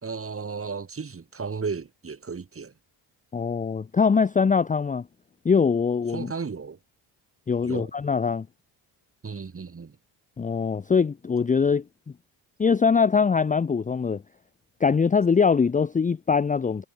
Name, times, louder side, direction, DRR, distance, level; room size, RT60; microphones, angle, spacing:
voice 1, 0.0-2.7 6.1-6.8 7.6-7.9 9.2-10.0, right 5 dB, 30° right, 4.2 m, -34 dB
voice 2, 3.3-5.0 5.4-6.3 7.5-8.5 10.4-11.8 12.6-14.2 14.8-16.9, left 5 dB, 20° left, 0.6 m, -22 dB
cardioid pair, 90°, 44 cm